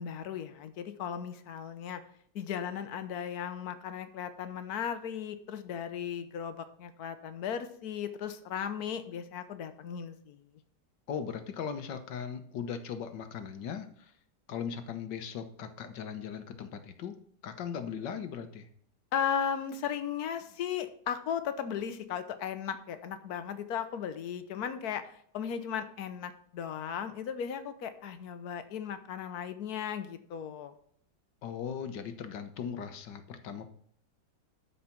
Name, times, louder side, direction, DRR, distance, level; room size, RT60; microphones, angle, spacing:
voice 1, 0.0-2.0 2.3-10.4 19.1-25.1 25.3-30.7, left 8 dB, 65° left, 10 dB, 1.4 m, -36 dB
voice 2, 11.1-14.1 14.5-17.2 17.4-18.7 31.4-33.7, left 7 dB, 80° left, 9 dB, 1.6 m, -38 dB
12.5 x 5.0 x 5.8 m, 0.62 s
omnidirectional pair, 1.9 m